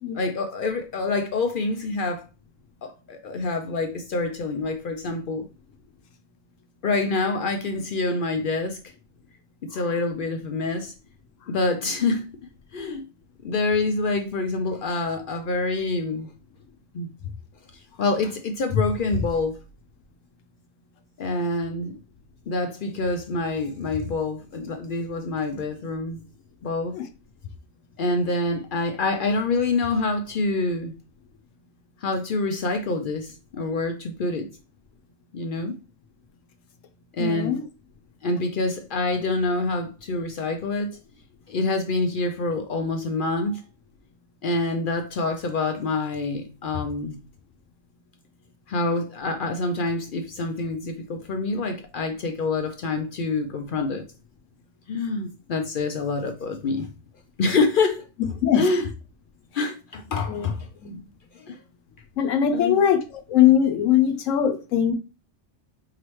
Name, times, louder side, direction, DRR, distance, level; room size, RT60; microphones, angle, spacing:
voice 1, 0.1-2.3 2.8-5.5 6.8-8.9 9.6-10.9 11.5-12.2 12.7-13.0 13.4-16.3 16.9-17.1 17.7-19.6 21.2-22.0 22.5-26.2 26.6-27.0 28.0-30.9 32.0-34.5 35.3-35.8 37.1-37.6 38.2-41.0 41.5-43.6 44.4-47.2 48.7-54.0 54.9-56.9 57.4-58.0 58.5-58.9 59.5-60.7 61.4-61.6 62.5-62.8, left 3 dB, 60° left, 0.6 m, -26 dB
voice 2, 37.2-37.6 58.4-58.7 60.3-60.5 60.8-61.0 62.2-64.9, left 9 dB, 85° left, 1.1 m, -21 dB
4.7 x 3.1 x 3.1 m
omnidirectional pair, 1.3 m